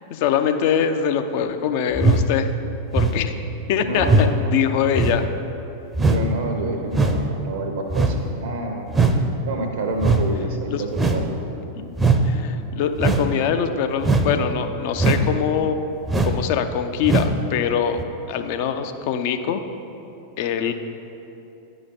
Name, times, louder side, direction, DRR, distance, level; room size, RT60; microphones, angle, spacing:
voice 1, 0.1-2.5 2.9-3.3 3.7-5.2 9.2-9.3 10.7-10.8 12.2-15.9 16.2-18.0 18.3-19.6 20.4-20.7, left 8 dB, 50° left, 8 dB, 0.5 m, -23 dB
sound 1, 1.9-2.3 2.9-3.2 4.0-4.3 4.9-5.2 5.9-6.3 6.9-7.2 7.9-8.2 8.9-9.2 10.0-10.2 10.9-11.3 12.0-12.2 13.0-13.3 14.0-14.3 15.0-15.3 16.1-16.4 17.0-17.3 18.0-18.1, right 3 dB, 10° right, 0.5 m, -19 dB
voice 2, 3.8-4.6 6.0-8.9 9.5-11.4, right 2 dB, 65° right, 4 dB, 0.6 m, -28 dB
10.0 x 4.9 x 4.1 m, 2.9 s
figure-of-eight pair, 90°, 0 cm